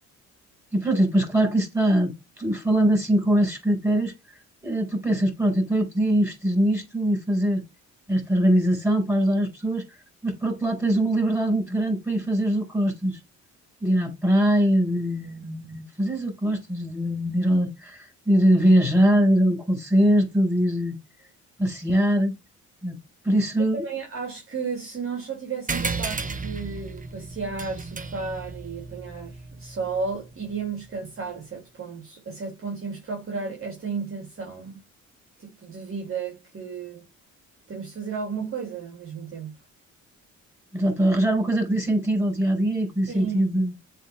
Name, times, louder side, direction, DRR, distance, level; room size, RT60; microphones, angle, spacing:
voice 1, 0.7-4.1 4.6-7.6 8.1-9.8 10.2-13.2 13.8-21.0 21.6-22.4 22.8-22.9 23.2-23.9 40.7-43.7, right 1 dB, 10° right, 5.1 m, -22 dB
voice 2, 23.7-34.8 35.4-37.0 37.7-39.6 43.1-43.4, right 5 dB, 45° right, 3.3 m, -33 dB
sound 1, 25.7-30.6, right 4 dB, 25° right, 1.1 m, -34 dB
7.6 x 4.3 x 3.5 m
cardioid pair, 90°, 30 cm